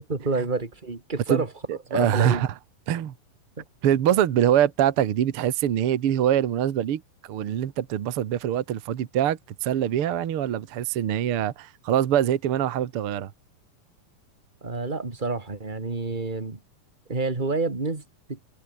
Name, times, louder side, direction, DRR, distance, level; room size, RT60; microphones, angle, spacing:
voice 1, 0.0-1.5 1.9-2.5 3.6-3.7 14.6-16.6 17.1-18.4, right 3 dB, 15° right, 1.9 m, -28 dB
voice 2, 1.7-2.5 2.9-3.1 3.8-7.0 7.3-13.3, right 10 dB, 55° right, 1.8 m, -24 dB
omnidirectional pair, 4.0 m